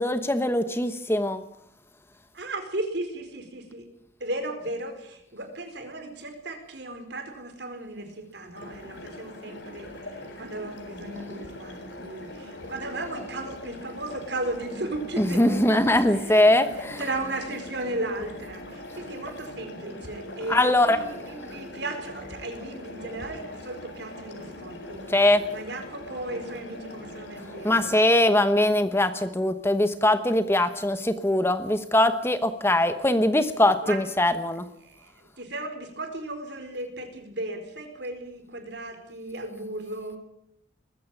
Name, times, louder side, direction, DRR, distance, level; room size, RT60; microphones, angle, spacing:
voice 1, 0.0-1.4 15.2-17.1 20.5-21.0 25.1-25.5 27.6-34.6, left 1 dB, 10° left, 10 dB, 1.0 m, -22 dB
voice 2, 2.3-3.9 4.2-25.2 25.5-28.4 33.8-34.0 34.8-40.2, right 2 dB, 60° right, 6 dB, 4.6 m, -36 dB
sound 1, 8.5-28.0, left 1 dB, 65° left, 4.9 m, -41 dB
20.5 x 15.0 x 9.1 m, 0.74 s
head